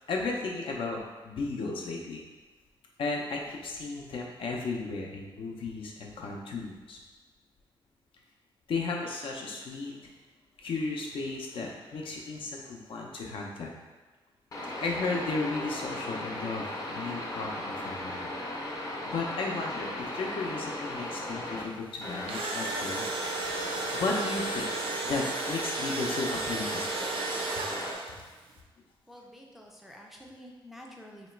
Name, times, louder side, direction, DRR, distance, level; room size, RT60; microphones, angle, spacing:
voice 1, 0.1-2.2 3.0-7.0 8.7-10.1 10.6-13.7 14.8-23.1 23.9-24.7 25.0-27.4 28.1-28.2, left 3 dB, 75° left, 0 dB, 0.7 m, -35 dB
sound 1, 14.5-21.6 22.0-27.9, left 1 dB, 40° left, 0.7 m, -37 dB
Engine / Drill, 22.0-28.3, right 4 dB, 85° right, 0.5 m, -34 dB
voice 2, 29.1-31.3, equal, ahead, -1 dB, 0.4 m, -49 dB
3.1 x 2.9 x 4.4 m, 1.3 s
wide cardioid pair, 170°, 9 cm